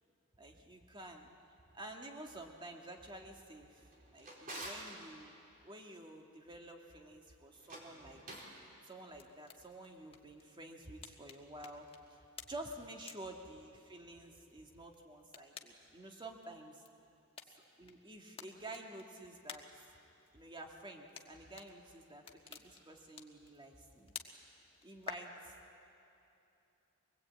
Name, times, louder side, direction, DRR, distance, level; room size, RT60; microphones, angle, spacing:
voice 1, 0.4-1.3 1.7-5.4 5.6-8.2 8.8-16.8 17.5-19.7 20.3-24.1 24.8-25.5, right 1 dB, 20° right, 2 dB, 1.9 m, -50 dB
Drawer open or close, 3.8-5.0 7.5-8.6, right 1 dB, 40° right, 3.9 m, -48 dB
sound 1, 9.0-25.2, left 5 dB, 25° left, 1.4 m, -55 dB
24.0 x 20.0 x 8.6 m, 2.8 s
head